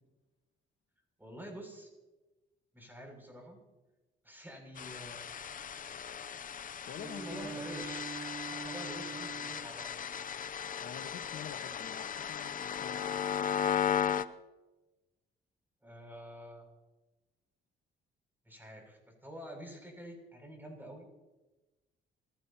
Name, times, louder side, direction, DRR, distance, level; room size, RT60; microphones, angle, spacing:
voice 1, 1.2-1.9 2.7-3.6 4.2-5.6 7.2-8.0 8.5-9.9 15.8-16.7 18.5-21.1, equal, 10° right, 1 dB, 7.3 m, -48 dB
sound 1, 4.8-14.2, left 8 dB, 45° left, 0.7 m, -36 dB
voice 2, 6.9-7.6 10.8-13.4, left 8 dB, 70° left, 6 dB, 1.6 m, -47 dB
Bowed string instrument, 6.9-10.0, right 5 dB, 25° right, 0.7 m, -45 dB
28.5 x 16.5 x 3.0 m, 1.1 s
cardioid pair, 90°, 20 cm